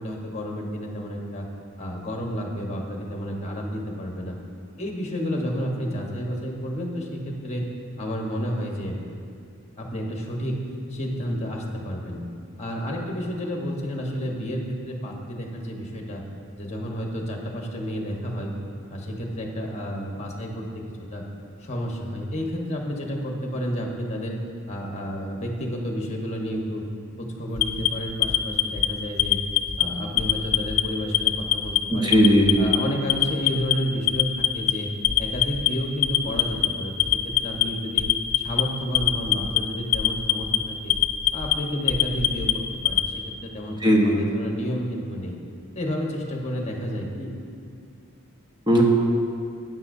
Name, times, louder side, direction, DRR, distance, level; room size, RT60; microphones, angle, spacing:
voice 1, 0.0-1.5 1.8-4.4 4.8-7.6 8.0-9.0 9.8-10.6 10.9-12.2 12.6-16.2 16.6-18.5 18.9-20.8 21.1-21.2 21.6-24.4 24.7-26.8 27.2-29.4 29.8-32.2 32.6-34.9 35.2-38.1 38.4-40.9 41.3-42.5 42.8-45.3 45.7-47.3, equal, 30° left, 0 dB, 1.2 m, -31 dB
Alarm, 27.6-28.9 29.2-29.8 30.2-30.8 31.1-31.8 32.1-32.8 33.1-33.7 34.1-34.7 35.0-35.7 36.0-36.7 37.0-37.6 38.0-38.6 38.9-39.6 39.9-40.6 40.9-41.5 41.9-43.1, left 14 dB, 70° left, 0.5 m, -21 dB
voice 2, 31.9-32.7 43.8-44.2 48.7-48.8, equal, 20° right, -2 dB, 1.1 m, -18 dB
12.5 x 9.3 x 2.7 m, 2.6 s
head